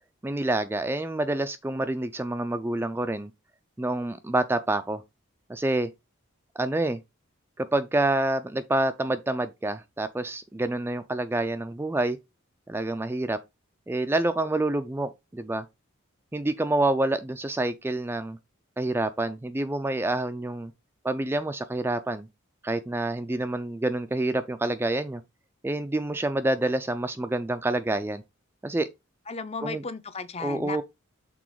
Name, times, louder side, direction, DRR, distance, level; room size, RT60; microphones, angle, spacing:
voice 1, 0.2-3.3 3.8-5.0 5.5-5.9 6.6-7.0 7.6-12.2 12.7-13.4 13.9-15.6 16.3-18.4 18.8-20.7 21.0-22.3 22.6-25.2 25.6-28.2 28.6-28.9 29.6-29.8 30.4-30.8, right 2 dB, 10° right, 0.3 m, -27 dB
voice 2, 29.3-30.8, left 4 dB, 30° left, 0.6 m, -35 dB
6.1 x 3.8 x 4.6 m
head